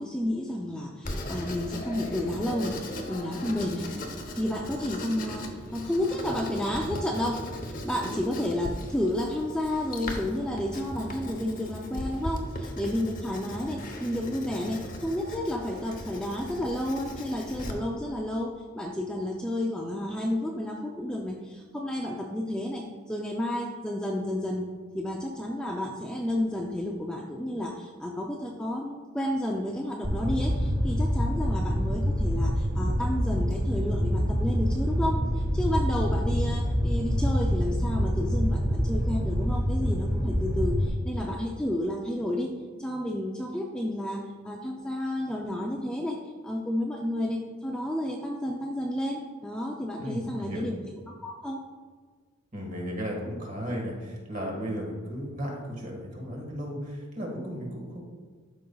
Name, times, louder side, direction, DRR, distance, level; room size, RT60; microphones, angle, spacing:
voice 1, 0.0-42.5 42.8-46.2 46.4-50.8 51.2-51.6, left 1 dB, 5° left, -1 dB, 0.4 m, -31 dB
Writing, 1.0-17.7, equal, 40° left, 0.8 m, -38 dB
Fire, 30.0-40.9, equal, 15° right, 1.7 m, -26 dB
voice 2, 50.0-50.7 52.5-58.0, equal, 35° right, -1 dB, 1.7 m, -35 dB
12.0 x 5.2 x 2.3 m, 1.5 s
head